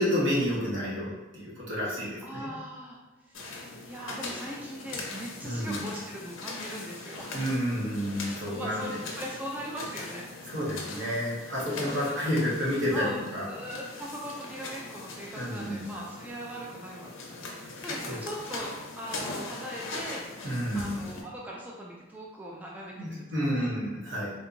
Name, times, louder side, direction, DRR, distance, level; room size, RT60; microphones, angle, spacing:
voice 1, 0.0-2.5 5.4-5.8 7.3-9.0 10.5-13.5 15.4-15.8 18.0-18.3 20.4-21.0 23.0-24.3, equal, 65° right, -6 dB, 1.2 m, -30 dB
voice 2, 2.2-7.3 8.5-10.3 11.9-12.2 12.9-20.2 20.7-23.7, equal, 10° right, -3 dB, 0.3 m, -40 dB
sound 1, 3.3-21.2, left 3 dB, 75° left, 0.6 m, -41 dB
3.4 x 2.8 x 2.5 m, 1.2 s
head